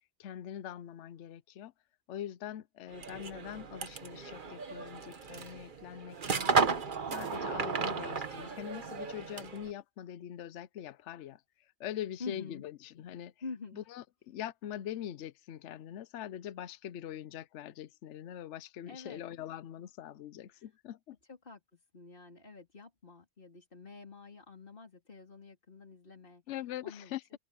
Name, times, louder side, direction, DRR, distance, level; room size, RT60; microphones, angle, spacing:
voice 1, 0.2-1.7 2.1-6.7 7.1-13.3 13.7-21.2 26.5-27.4, left 11 dB, 75° left, 1.0 m, -43 dB
sound 1, 2.9-9.7, right 5 dB, 45° right, 1.2 m, -34 dB
voice 2, 12.2-12.6 13.4-13.8 18.9-19.2 20.5-20.7 21.3-26.4 26.8-27.4, left 4 dB, 45° left, 3.6 m, -47 dB
open air
omnidirectional pair, 1.2 m